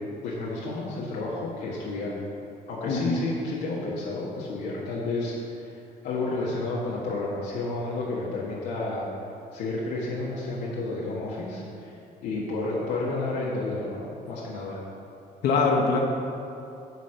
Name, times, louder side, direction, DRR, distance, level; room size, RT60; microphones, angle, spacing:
voice 1, 0.2-2.1 2.7-9.0 9.5-11.9 12.2-14.8, left 2 dB, 85° left, -6 dB, 1.4 m, -31 dB
voice 2, 2.9-3.2 15.4-16.0, left 4 dB, 65° left, -1 dB, 1.0 m, -23 dB
9.0 x 4.2 x 6.4 m, 2.7 s
cardioid pair, 110°, 17 cm